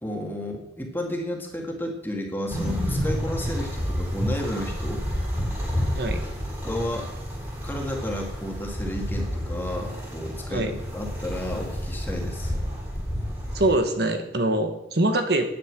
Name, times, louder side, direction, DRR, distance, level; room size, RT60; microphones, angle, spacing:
voice 1, 0.0-5.0 6.6-7.1 7.6-12.5, left 1 dB, 10° left, 0 dB, 2.0 m, -32 dB
sound 1, 2.5-13.7, equal, 15° right, 3.2 m, -30 dB
voice 2, 13.5-15.5, right 1 dB, 55° right, 6 dB, 1.3 m, -23 dB
9.7 x 9.5 x 7.5 m, 0.89 s
head